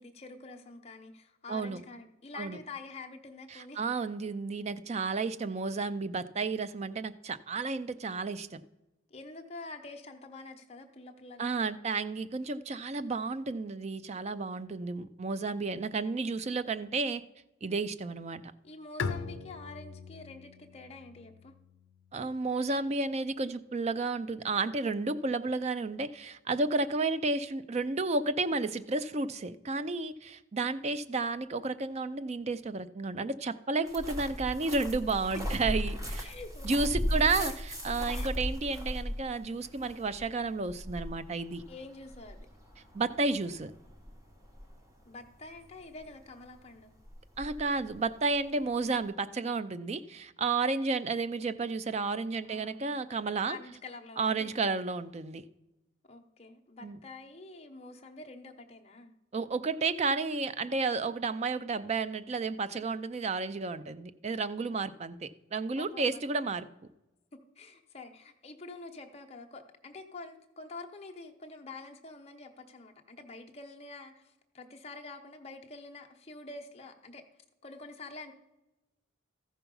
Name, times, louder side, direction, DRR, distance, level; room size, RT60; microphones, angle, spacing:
voice 1, 0.0-3.8 9.1-11.5 18.6-21.5 35.3-35.4 36.2-37.5 38.1-38.3 41.7-42.4 45.0-46.9 52.5-52.9 53.4-54.5 56.0-59.1 65.8-66.2 67.6-77.2 77.6-78.3, left 3 dB, 30° left, 3 dB, 0.9 m, -47 dB
voice 2, 3.5-8.6 11.4-17.2 17.6-18.4 22.1-36.3 36.6-37.5 37.8-41.6 42.9-43.7 47.4-53.6 54.2-55.4 56.8-57.0 59.3-66.7, right 3 dB, 30° right, 14 dB, 0.4 m, -32 dB
Bowed string instrument, 19.0-22.5, left 5 dB, 70° left, 0.6 m, -40 dB
sound 1, 33.9-49.1, equal, 15° right, 1.3 m, -38 dB
14.0 x 5.8 x 5.4 m, 0.99 s
head